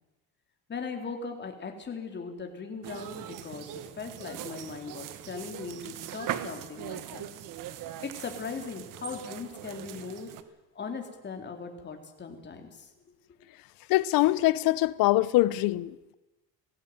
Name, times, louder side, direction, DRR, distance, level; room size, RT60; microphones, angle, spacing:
voice 1, 0.7-3.7 4.0-7.3 8.0-10.3 10.8-12.9, left 5 dB, 30° left, 3.8 m, -39 dB
sound 1, 2.8-10.4, right 11 dB, 65° right, 1.6 m, -40 dB
voice 2, 13.9-16.1, left 17 dB, 75° left, 1.0 m, -24 dB
18.0 x 16.0 x 9.5 m
cardioid pair, 120°, 35 cm